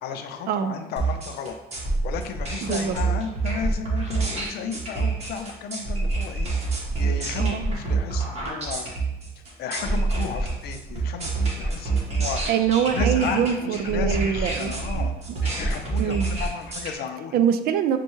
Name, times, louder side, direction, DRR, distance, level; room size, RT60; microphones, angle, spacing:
voice 1, 0.0-1.6 2.0-6.5 7.0-9.0 9.4-12.4 12.9-15.1 15.4-17.4, left 6 dB, 70° left, 7 dB, 0.5 m, -33 dB
sound 1, 1.0-16.9, right 3 dB, 40° right, 1.3 m, -27 dB
voice 2, 2.6-3.0 7.4-7.6 12.5-14.7 15.3-15.4 16.0-16.3 17.3-18.0, right 8 dB, 65° right, 10 dB, 0.4 m, -24 dB
6.3 x 2.2 x 3.0 m, 0.98 s
cardioid pair, 110°, 17 cm